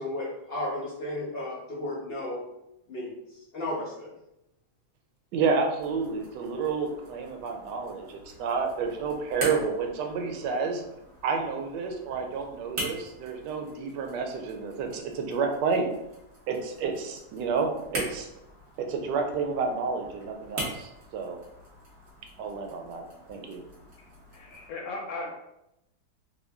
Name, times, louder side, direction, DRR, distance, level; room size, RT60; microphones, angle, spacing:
voice 1, 0.0-2.4 2.9-4.1, left 1 dB, 50° left, -5 dB, 0.8 m, -34 dB
voice 2, 5.3-10.8 11.2-15.9 16.5-18.3 18.8-21.4 22.4-23.6, right 5 dB, 90° right, 4 dB, 1.2 m, -30 dB
sound 1, 5.8-24.7, right 1 dB, 45° right, 1.1 m, -43 dB
voice 3, 24.3-25.4, left 2 dB, 65° left, 0 dB, 1.1 m, -36 dB
3.7 x 2.1 x 3.4 m, 0.86 s
omnidirectional pair, 1.8 m